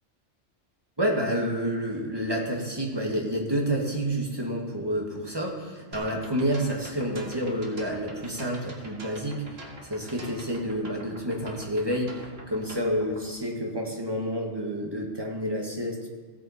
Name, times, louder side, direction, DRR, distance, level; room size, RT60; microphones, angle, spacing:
voice 1, 1.0-16.1, equal, 20° right, 0 dB, 1.8 m, -29 dB
sound 1, 5.9-13.2, right 2 dB, 55° right, 2.0 m, -44 dB
17.0 x 8.2 x 4.3 m, 1.4 s
omnidirectional pair, 1.2 m